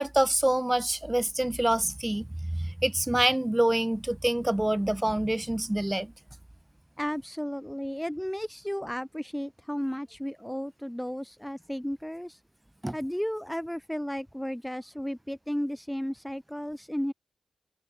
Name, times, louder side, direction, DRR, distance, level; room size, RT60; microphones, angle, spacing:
voice 1, 0.0-6.1 12.8-12.9, right 1 dB, 15° right, 3.3 m, -26 dB
voice 2, 7.0-12.4 12.9-17.1, equal, 5° left, 2.9 m, -33 dB
cardioid pair, 50°, 0 cm